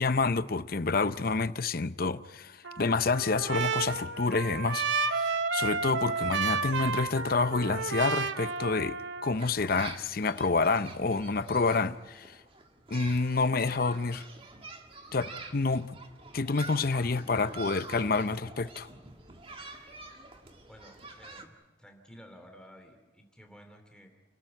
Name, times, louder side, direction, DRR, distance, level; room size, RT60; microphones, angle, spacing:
voice 1, 0.0-12.4 12.9-14.2 15.1-15.9 16.3-18.9, left 3 dB, 50° left, 0.7 m, -28 dB
Trumpet, 2.6-9.4, right 4 dB, 75° right, 1.0 m, -32 dB
sound 1, 9.3-21.5, right 3 dB, 30° right, 1.8 m, -46 dB
voice 2, 20.7-24.1, equal, 5° left, 2.7 m, -53 dB
29.5 x 14.0 x 9.7 m
head